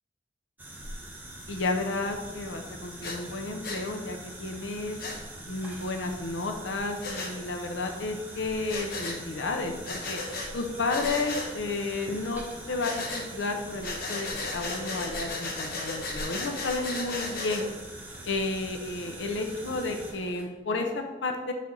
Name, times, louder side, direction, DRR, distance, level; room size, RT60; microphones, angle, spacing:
sound 1, 0.6-20.5, right 1 dB, 10° right, 0.9 m, -43 dB
voice 1, 1.5-5.0 5.4-10.2 10.5-12.4 12.7-17.7 18.3-21.5, left 3 dB, 90° left, 4 dB, 0.6 m, -32 dB
Breathing, 3.0-3.2 3.6-3.8 5.0-5.2 7.0-7.3 8.7-9.2 9.8-10.5 10.9-11.5 12.8-13.3 13.8-17.6, left 3 dB, 55° left, 1.0 m, -35 dB
7.3 x 4.2 x 3.8 m, 1.2 s
head